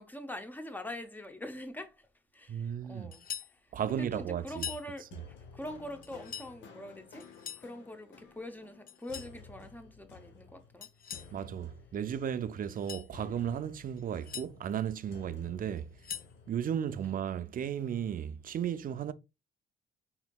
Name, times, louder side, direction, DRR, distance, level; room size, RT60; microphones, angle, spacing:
voice 1, 0.0-2.1 2.3-7.3 7.6-11.2 17.0-17.5, left 1 dB, 10° left, 0.7 m, -44 dB
voice 2, 2.5-3.1 3.7-4.7 11.3-15.9 16.5-19.1, right 9 dB, 45° right, 0.4 m, -34 dB
sound 1, 3.1-3.5 4.5-4.9 6.0-6.5 7.2-7.7 8.9-9.3 10.8-11.3 12.6-13.1 14.0-14.5 15.8-16.3, left 9 dB, 45° left, 0.5 m, -42 dB
sound 2, 3.9-16.8, left 5 dB, 75° left, 0.9 m, -54 dB
4.3 x 3.6 x 2.3 m
cardioid pair, 90°, 20 cm